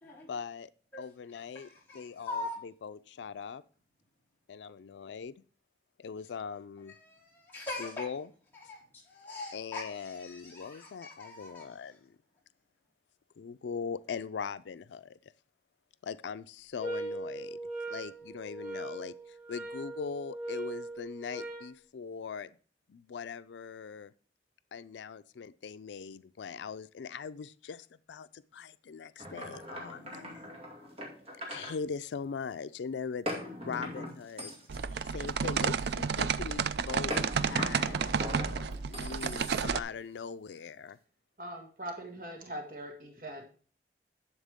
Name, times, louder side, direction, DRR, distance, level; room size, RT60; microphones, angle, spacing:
voice 1, 0.3-0.7 1.0-1.7 1.9-3.6 4.5-5.3 6.0-6.9 7.8-8.3 9.5-12.1 13.4-15.2 16.0-17.6 17.9-22.5 22.9-24.1 24.7-30.5 31.5-33.3 33.7-34.5 35.0-38.1 38.9-41.0, left 6 dB, 90° left, 14 dB, 0.4 m, -41 dB
voice 2, 1.5-2.6 7.0-8.1 8.7-11.7, left 2 dB, 10° left, -7 dB, 4.2 m, -42 dB
sound 1, 16.8-21.7, right 2 dB, 10° right, 4.6 m, -40 dB
sound 2, 29.2-31.7 33.3-35.9 37.1-39.9, left 1 dB, 35° right, 2.2 m, -40 dB
sound 3, 34.7-39.8, right 6 dB, 70° right, 0.4 m, -31 dB
voice 3, 41.4-43.5, right 1 dB, 50° right, 3 dB, 1.7 m, -41 dB
11.0 x 7.2 x 3.5 m, 0.42 s
head